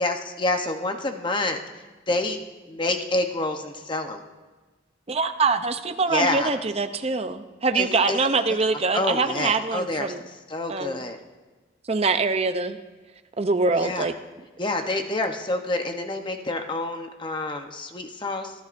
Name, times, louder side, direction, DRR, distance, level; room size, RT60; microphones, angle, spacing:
voice 1, 0.0-1.6 2.1-2.4 2.7-4.2 6.1-6.5 7.8-8.2 8.9-10.1 10.5-11.2 13.8-14.1 14.6-18.5, left 2 dB, 25° left, 5 dB, 0.9 m, -27 dB
voice 2, 5.1-10.2 10.7-11.0 11.9-12.8 13.4-14.1, right 4 dB, 30° right, 8 dB, 0.6 m, -24 dB
26.5 x 11.5 x 2.6 m, 1.3 s
head